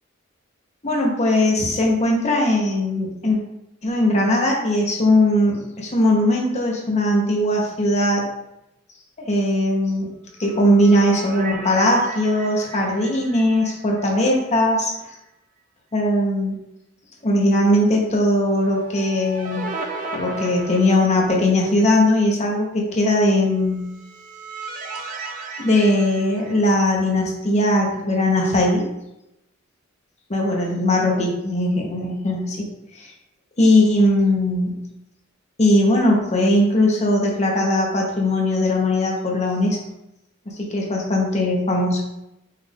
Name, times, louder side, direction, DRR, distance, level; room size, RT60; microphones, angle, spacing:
voice 1, 0.8-3.4 3.8-8.2 9.2-10.1 10.4-14.9 15.9-16.6 17.2-19.7 20.1-23.9 25.6-28.9 30.3-32.7 33.0-33.1 33.6-34.8 35.6-39.8 40.5-42.0, left 1 dB, 35° left, -1 dB, 1.0 m, -19 dB
sound 1, 10.4-14.7 15.0-15.1 18.6-21.7 23.8-27.2, right 3 dB, 40° right, 0.5 m, -36 dB
5.6 x 2.6 x 3.6 m, 0.88 s
head